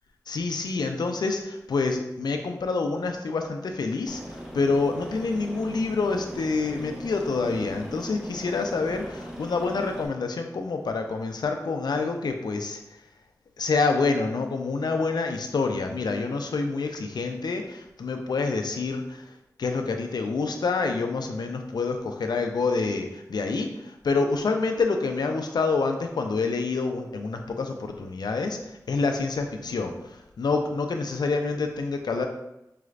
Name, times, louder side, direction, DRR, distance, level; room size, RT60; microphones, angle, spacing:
voice 1, 0.3-13.0 13.6-19.3 19.6-32.3, left 4 dB, 85° left, 5 dB, 0.5 m, -27 dB
Aircraft, 4.1-10.1, equal, 10° right, 0.8 m, -39 dB
4.9 x 2.4 x 3.2 m, 0.89 s
wide cardioid pair, 60°, 7 cm